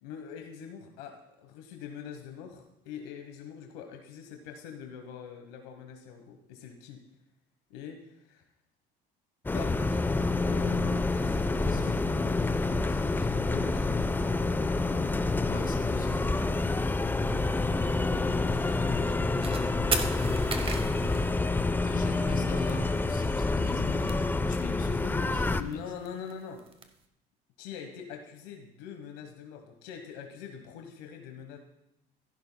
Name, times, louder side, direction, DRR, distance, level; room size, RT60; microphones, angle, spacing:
voice 1, 0.0-7.0 7.7-8.4 9.5-10.0 10.5-14.7 18.1-20.5 22.5-22.8 25.5-26.6 27.6-31.6, left 7 dB, 85° left, 4 dB, 1.3 m, -44 dB
sound 1, 9.5-25.6, left 3 dB, 10° left, 0.4 m, -28 dB
voice 2, 11.5-12.0 13.2-13.3 15.5-16.3 21.8-25.8, left 5 dB, 45° left, 5 dB, 1.8 m, -40 dB
sound 2, 19.4-19.6 19.9-22.0 22.4-22.5 22.7-22.8 23.0-23.5 23.8-25.0 25.3-26.9, right 4 dB, 25° right, 1.0 m, -35 dB
14.5 x 11.5 x 2.3 m, 0.83 s
supercardioid pair, 100°, 21 cm